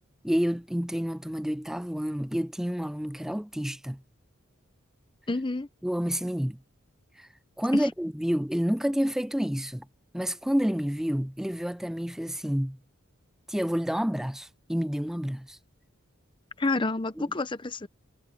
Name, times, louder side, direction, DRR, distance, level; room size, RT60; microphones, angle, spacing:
voice 1, 0.2-4.0 5.8-6.6 7.2-7.3 7.6-9.9 10.1-12.8 13.5-15.6 17.2-17.3, equal, ahead, 0.3 m, -29 dB
voice 2, 5.3-5.7 16.6-17.9, left 2 dB, 25° left, 0.8 m, -29 dB
head